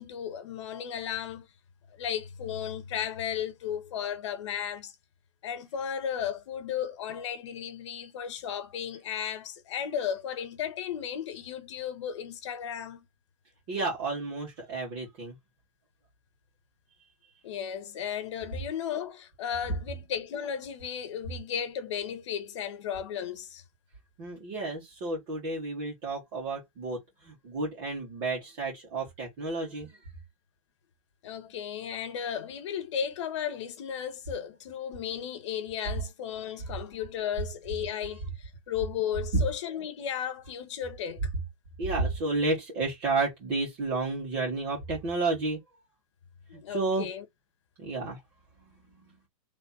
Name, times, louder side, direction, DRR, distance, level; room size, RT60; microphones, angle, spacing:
voice 1, 0.0-1.5 2.0-4.9 5.4-13.0 17.4-23.6 31.2-41.3 46.5-47.2, left 8 dB, 55° left, 1.2 m, -35 dB
voice 2, 13.7-15.3 24.2-30.0 39.3-39.4 41.8-45.6 46.5-47.1 47.8-48.2 48.8-48.9, right 3 dB, 30° right, 2.1 m, -31 dB
3.4 x 3.4 x 4.2 m
supercardioid pair, 165°, 18 cm